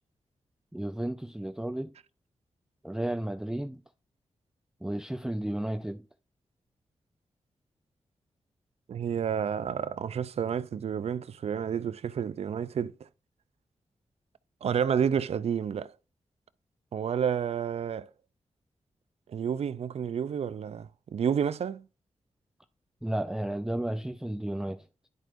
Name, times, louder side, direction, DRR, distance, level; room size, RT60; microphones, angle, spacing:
voice 1, 0.7-1.9 2.8-3.8 4.8-6.0 23.0-24.9, right 1 dB, 5° right, 0.4 m, -33 dB
voice 2, 8.9-12.9 14.6-15.9 16.9-18.1 19.3-21.8, right 8 dB, 65° right, 0.4 m, -30 dB
11.0 x 4.5 x 2.5 m
cardioid pair, 60°, 11 cm